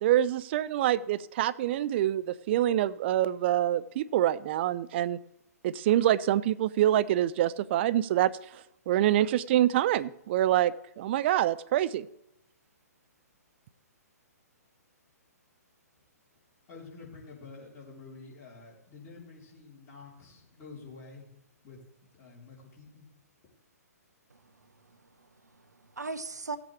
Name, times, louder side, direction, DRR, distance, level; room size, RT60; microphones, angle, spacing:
voice 1, 0.0-5.2 5.6-12.1, right 12 dB, 40° right, 16 dB, 0.5 m, -26 dB
voice 2, 16.7-21.3 21.6-21.8 22.1-23.1, left 4 dB, 30° left, -4 dB, 3.7 m, -48 dB
voice 3, 24.3-26.6, right 3 dB, 85° right, 11 dB, 1.0 m, -41 dB
16.0 x 8.3 x 3.4 m, 0.87 s
figure-of-eight pair, 125°, 9 cm